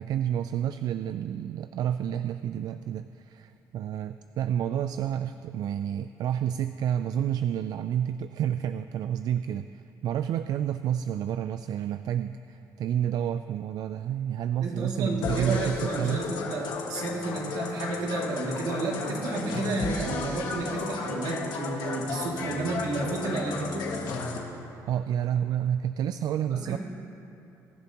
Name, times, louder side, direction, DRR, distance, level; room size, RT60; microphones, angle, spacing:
voice 1, 0.0-16.3 24.9-26.8, right 10 dB, 65° right, 11 dB, 0.3 m, -29 dB
voice 2, 14.6-23.9 26.5-26.8, right 2 dB, 85° right, -2 dB, 2.5 m, -31 dB
sound 1, 15.2-24.4, left 4 dB, 80° left, 1.7 m, -34 dB
22.5 x 10.5 x 2.9 m, 3.0 s
cardioid pair, 110°, 7 cm